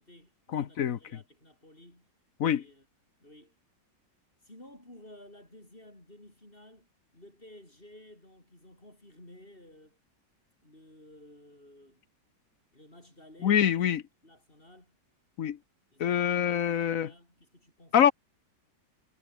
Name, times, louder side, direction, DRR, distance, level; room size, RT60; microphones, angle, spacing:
voice 1, 0.0-2.1 2.5-2.9 3.2-3.6 4.4-10.0 10.6-12.0 12.7-13.9 14.2-15.0 15.9-18.0, left 1 dB, 30° left, 7.2 m, -54 dB
voice 2, 0.5-1.0 2.4-2.6 13.4-14.0 15.4-15.6 16.0-17.1 17.9-18.1, left 9 dB, 55° left, 1.2 m, -25 dB
omnidirectional pair, 1.9 m